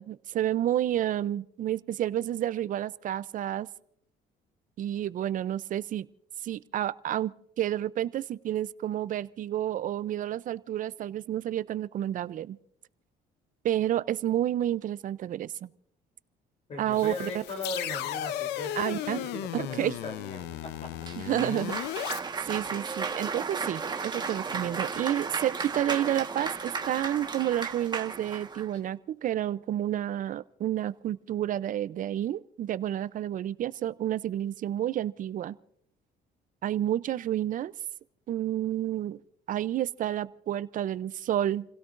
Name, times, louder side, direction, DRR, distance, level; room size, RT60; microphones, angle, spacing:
voice 1, 0.0-3.7 4.8-6.1 6.4-12.6 13.6-15.7 16.8-17.3 18.8-19.2 19.5-20.0 21.2-21.7 22.4-35.5 36.6-37.7 38.3-39.2 39.5-41.6, right 11 dB, 50° right, 16 dB, 0.6 m, -30 dB
voice 2, 16.7-20.9 21.4-21.7, left 2 dB, 40° left, 3 dB, 3.4 m, -39 dB
sound 1, 16.9-22.2, left 12 dB, 85° left, 0.7 m, -35 dB
Cheering / Applause, 21.0-28.7, right 5 dB, 25° right, 1.4 m, -34 dB
29.5 x 17.0 x 2.6 m, 0.72 s
cardioid pair, 110°, 17 cm